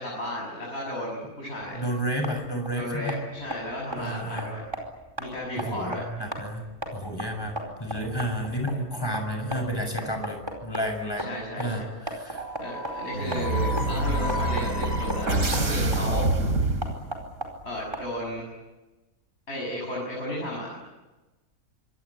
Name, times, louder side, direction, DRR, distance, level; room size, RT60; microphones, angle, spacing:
voice 1, 0.0-1.8 2.7-4.6 5.2-6.0 11.2-11.9 12.6-16.3 17.6-18.5 19.5-20.8, left 1 dB, 45° left, -3 dB, 7.0 m, -33 dB
sound 1, 1.6-18.4, equal, 15° right, 4.6 m, -38 dB
voice 2, 1.7-3.2 4.0-4.5 5.6-6.6 6.9-11.3 11.6-12.4, equal, 15° left, 4 dB, 6.4 m, -31 dB
sound 2, 12.3-17.4, right 2 dB, 70° right, 3.5 m, -27 dB
26.0 x 21.5 x 9.8 m, 1.1 s
omnidirectional pair, 1.5 m